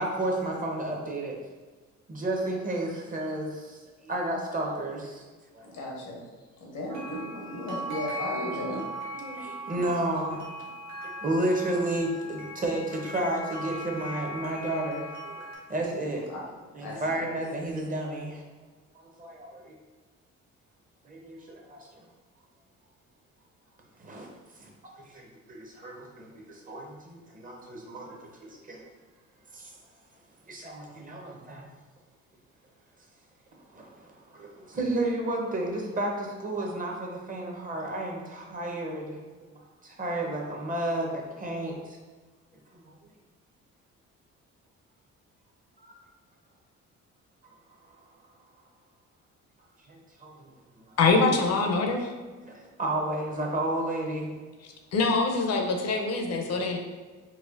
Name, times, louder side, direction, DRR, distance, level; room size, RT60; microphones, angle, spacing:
voice 1, 0.0-1.4 2.1-5.2 5.5-5.7 9.1-10.4 11.0-15.4 15.7-16.2 16.7-18.4 18.9-19.7 21.0-22.1 24.0-24.3 24.6-24.7 25.0-28.9 29.5-29.7 30.5-31.7 33.7-39.2 39.5-42.0 42.7-43.0 45.8-46.0 49.9-50.5 50.8-51.0 52.5-54.3 56.7-56.8, right 1 dB, 30° right, 0 dB, 0.6 m, -32 dB
voice 2, 5.6-6.2 6.6-8.8 16.3-16.4 16.8-17.0, left 1 dB, 90° left, -3 dB, 1.0 m, -35 dB
sound 1, 6.9-15.6, right 1 dB, 65° right, 0.9 m, -39 dB
voice 3, 51.0-52.1 54.9-56.8, left 3 dB, 55° left, 3 dB, 0.6 m, -24 dB
4.1 x 2.1 x 2.4 m, 1.3 s
cardioid pair, 90°, 30 cm